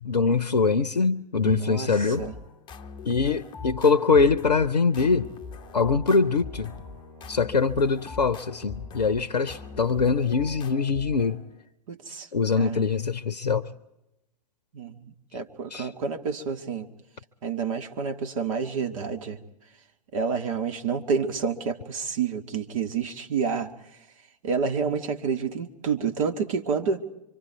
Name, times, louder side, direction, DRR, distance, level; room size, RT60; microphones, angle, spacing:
voice 1, 0.0-2.3 3.0-5.3 5.7-6.7 7.3-11.4 12.3-13.7 15.7-15.9, left 4 dB, 80° left, 0.7 m, -23 dB
voice 2, 1.4-2.4 11.9-12.3 12.6-12.9 14.7-16.9 17.4-19.4 20.1-23.7 24.4-27.0, right 5 dB, 55° right, 1.7 m, -29 dB
sound 1, 2.1-11.6, left 5 dB, 20° left, 0.9 m, -42 dB
Brass instrument, 5.0-10.5, equal, 35° right, 7.0 m, -50 dB
25.0 x 25.0 x 4.7 m
figure-of-eight pair, 100°, 21 cm